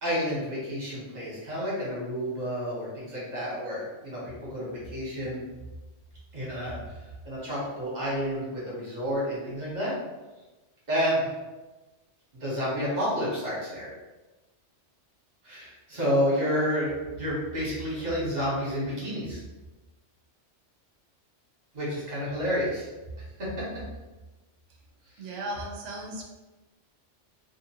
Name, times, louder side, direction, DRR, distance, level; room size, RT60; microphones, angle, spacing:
voice 1, 0.0-5.4 6.3-6.8 7.2-9.9 10.9-11.3 12.3-13.9 15.4-19.4 21.7-22.9 23.4-23.6, equal, 40° right, -6 dB, 1.1 m, -30 dB
voice 2, 25.2-26.2, right 1 dB, 80° right, -1 dB, 0.9 m, -36 dB
2.7 x 2.5 x 2.9 m, 1.1 s
omnidirectional pair, 1.2 m